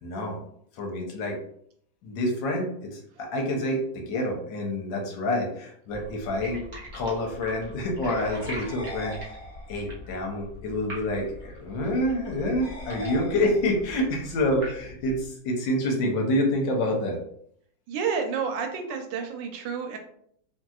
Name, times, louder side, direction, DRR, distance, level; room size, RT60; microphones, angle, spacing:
voice 1, 0.0-0.4 0.7-1.4 2.0-6.6 6.9-9.3 9.7-17.2, left 1 dB, 80° left, 1 dB, 1.4 m, -27 dB
sound 1, 5.9-15.3, equal, 40° right, 0.8 m, -42 dB
sound 2, 8.6-10.0 12.6-14.0, left 1 dB, 65° left, 1.1 m, -41 dB
voice 2, 17.9-20.0, right 6 dB, 80° right, 4 dB, 1.2 m, -30 dB
3.0 x 2.7 x 2.3 m, 0.67 s
omnidirectional pair, 2.0 m